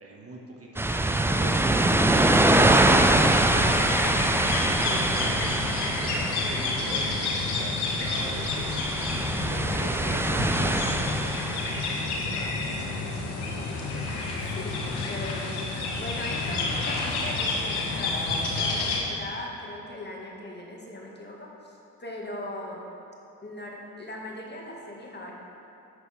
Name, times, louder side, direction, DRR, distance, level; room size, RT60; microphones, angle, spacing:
voice 1, 0.0-2.3 2.6-5.7 6.0-9.2 9.5-13.3, right 2 dB, 30° right, -2 dB, 1.6 m, -41 dB
sound 1, 0.8-11.9, right 2 dB, 5° right, 0.5 m, -24 dB
sound 2, 2.2-19.0, left 3 dB, 60° left, 1.6 m, -30 dB
voice 2, 13.9-22.8 23.4-25.3, left 1 dB, 25° left, -2 dB, 1.9 m, -39 dB
11.0 x 8.3 x 3.5 m, 2.9 s
figure-of-eight pair, 45°, 44 cm